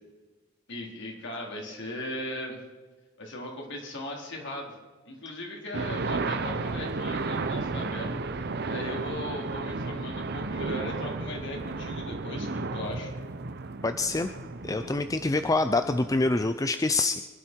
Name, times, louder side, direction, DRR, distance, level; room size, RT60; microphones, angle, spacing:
voice 1, 0.7-2.6 3.2-4.7 5.1-13.1, left 1 dB, 55° left, 0 dB, 4.0 m, -38 dB
sound 1, 5.7-16.5, right 3 dB, 50° right, 0.8 m, -33 dB
voice 2, 13.8-14.3 14.6-17.2, left 2 dB, 15° left, 9 dB, 0.4 m, -26 dB
25.5 x 12.0 x 4.6 m, 1.3 s
head